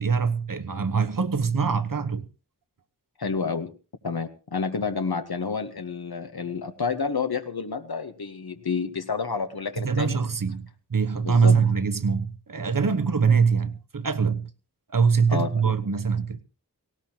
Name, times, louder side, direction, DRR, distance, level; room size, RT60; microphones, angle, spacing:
voice 1, 0.0-2.3 9.8-14.5 14.9-16.4, right 5 dB, 55° right, 1.1 m, -23 dB
voice 2, 3.2-3.7 4.0-10.2 11.2-11.6 15.3-15.7, left 5 dB, 65° left, 1.2 m, -29 dB
18.5 x 17.0 x 2.9 m
wide cardioid pair, 45°, 40 cm